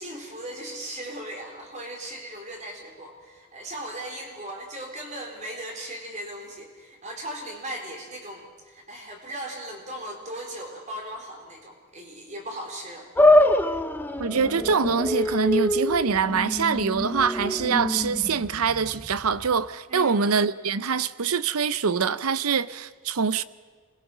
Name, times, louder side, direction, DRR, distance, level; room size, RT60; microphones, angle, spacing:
voice 1, 0.0-13.1 19.9-20.3, right 1 dB, 35° right, 4.1 m, -38 dB
sound 1, 13.2-19.6, left 1 dB, 10° left, 0.7 m, -24 dB
voice 2, 14.2-23.4, right 5 dB, 80° right, 0.7 m, -24 dB
26.0 x 21.0 x 6.2 m
head